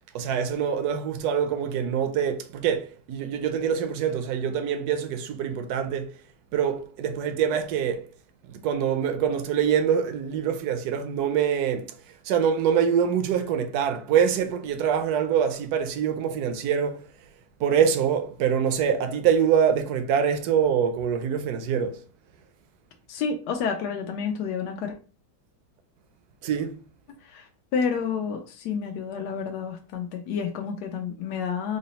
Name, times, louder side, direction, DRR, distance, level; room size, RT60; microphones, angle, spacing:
voice 1, 0.1-6.2 6.5-8.1 8.4-17.1 17.6-22.0 26.4-26.8, right 8 dB, 75° right, 1.1 m, -25 dB
voice 2, 23.1-24.9 27.2-31.8, left 6 dB, 85° left, 1.2 m, -30 dB
3.9 x 2.0 x 3.9 m
omnidirectional pair, 1.8 m